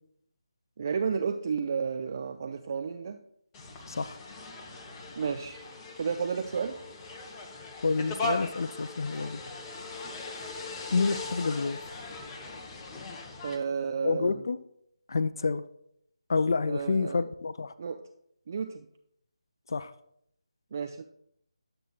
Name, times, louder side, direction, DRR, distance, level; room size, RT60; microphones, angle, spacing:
voice 1, 0.8-3.2 5.2-5.6 6.0-6.8 13.4-14.4 16.7-17.3 17.8-18.0 18.5-18.9 20.7-21.0, right 6 dB, 35° right, 7 dB, 0.4 m, -32 dB
sound 1, 3.5-13.6, left 2 dB, 15° left, 0.7 m, -39 dB
voice 2, 3.9-4.2 7.8-9.4 10.9-11.8 14.0-14.6 15.1-15.6 16.3-17.7 19.7-19.9, left 4 dB, 45° left, 14 dB, 0.3 m, -28 dB
10.5 x 7.6 x 2.4 m, 0.73 s
figure-of-eight pair, 155°, 3 cm